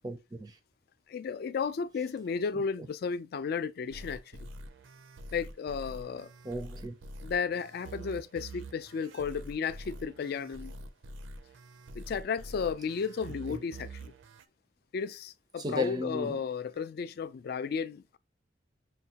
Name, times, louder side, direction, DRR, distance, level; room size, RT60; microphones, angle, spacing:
voice 1, 0.0-0.6 2.5-2.6 6.4-6.9 13.5-13.6 15.6-16.4, left 1 dB, 20° right, 0.4 m, -35 dB
voice 2, 1.1-4.2 5.3-6.3 7.2-10.7 11.9-14.1 14.9-18.2, left 6 dB, 55° left, 0.3 m, -34 dB
sound 1, 3.9-14.5, right 1 dB, 85° right, 0.5 m, -46 dB
6.4 x 2.2 x 2.8 m
head